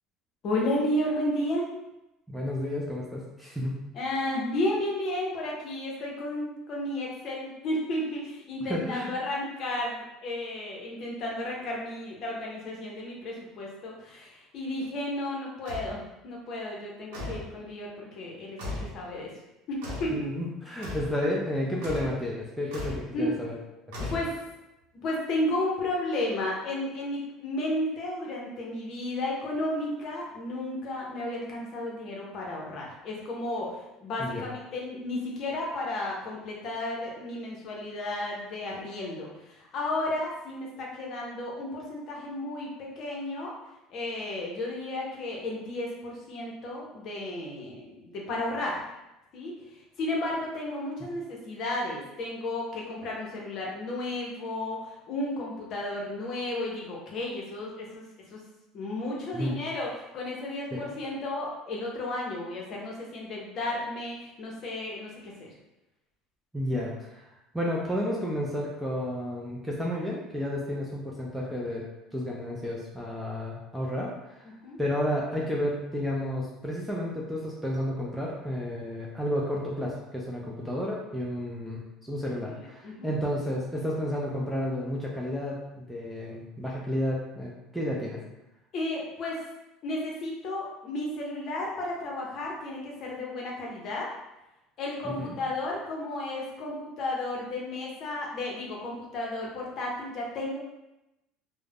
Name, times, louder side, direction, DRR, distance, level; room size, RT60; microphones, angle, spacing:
voice 1, 0.4-1.7 3.9-19.4 19.7-20.3 23.1-23.4 24.0-24.4 25.0-43.5 43.9-48.8 49.3-58.0 58.3-58.4 58.7-65.5 74.4-74.8 82.4-83.1 88.7-89.4 89.8-94.1 94.8-100.6, left 1 dB, 40° left, -2 dB, 0.6 m, -33 dB
voice 2, 2.3-3.8 8.7-9.1 20.1-23.5 23.9-24.1 34.2-34.4 59.3-59.6 60.7-60.8 66.5-67.2 67.5-71.8 72.1-74.4 74.8-88.2 95.0-95.4, left 1 dB, ahead, -4 dB, 0.3 m, -31 dB
sound 1, 15.7-16.0 17.1-17.5 18.6-19.0 19.8-20.2 20.8-21.2 21.8-22.2 22.7-23.1 23.9-24.6, left 2 dB, 85° right, 0.7 m, -36 dB
2.3 x 2.0 x 3.3 m, 0.94 s
cardioid pair, 165°, 0 cm